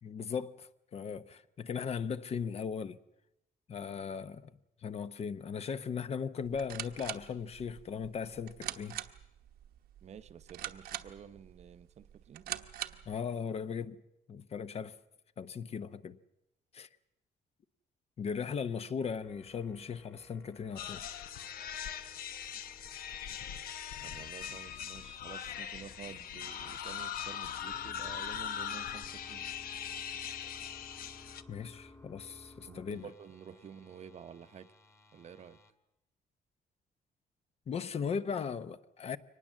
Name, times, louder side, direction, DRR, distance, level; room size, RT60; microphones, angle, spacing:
voice 1, 0.0-3.0 3.7-4.5 4.8-9.0 13.1-14.0 14.3-15.0 15.4-16.2 16.7-16.9 18.2-21.0 31.5-33.1 37.7-39.2, left 6 dB, 40° left, 0.8 m, -38 dB
sound 1, 6.4-13.2, right 12 dB, 75° right, 1.1 m, -44 dB
voice 2, 10.0-12.5 24.0-29.4 32.7-34.7 35.1-35.6, right 8 dB, 45° right, 0.8 m, -50 dB
sound 2, 19.2-35.7, left 2 dB, 15° left, 1.5 m, -58 dB
sound 3, 20.8-31.4, left 9 dB, 70° left, 1.0 m, -41 dB
24.0 x 19.5 x 7.4 m
cardioid pair, 140°, 16 cm